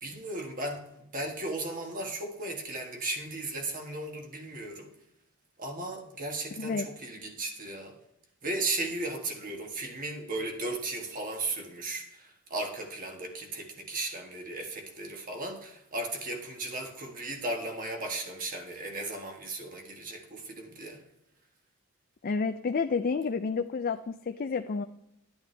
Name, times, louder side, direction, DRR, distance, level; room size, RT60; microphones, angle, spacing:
voice 1, 0.0-4.9 5.6-8.0 8.4-21.0, right 2 dB, 40° right, 1.5 m, -36 dB
voice 2, 6.6-6.9 22.2-24.8, left 4 dB, 40° left, 0.4 m, -30 dB
11.0 x 10.5 x 3.4 m
head